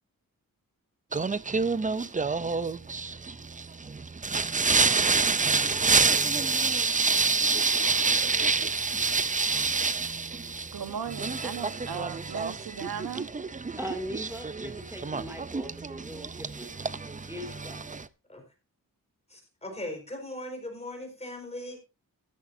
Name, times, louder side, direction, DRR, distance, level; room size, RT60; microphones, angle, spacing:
Singing, 1.1-18.1, right 4 dB, 25° right, 0.5 m, -28 dB
voice 1, 10.7-13.3, right 8 dB, 85° right, 1.3 m, -37 dB
voice 2, 13.8-16.7 17.0-17.9, equal, 5° right, 2.6 m, -40 dB
voice 3, 19.3-21.8, left 1 dB, 20° left, 4.7 m, -39 dB
13.5 x 13.0 x 2.7 m
wide cardioid pair, 135°, 35 cm